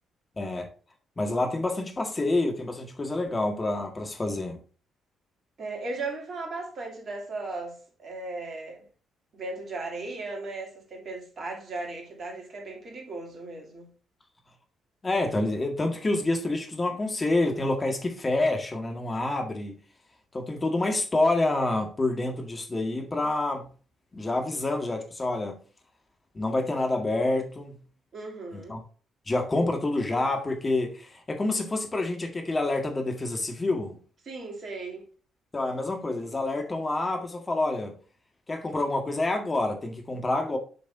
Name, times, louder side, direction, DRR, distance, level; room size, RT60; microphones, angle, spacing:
voice 1, 0.4-0.7 1.2-4.6 15.0-19.8 20.3-23.7 24.1-25.6 26.3-27.8 28.5-28.8 29.3-34.0 35.5-38.0 38.5-40.6, left 2 dB, 30° left, 1.8 m, -27 dB
voice 2, 5.6-8.8 9.3-13.9 28.1-28.8 34.2-35.0, right 3 dB, 50° right, 2.8 m, -37 dB
8.4 x 6.1 x 2.7 m
hypercardioid pair, 45°, 0 cm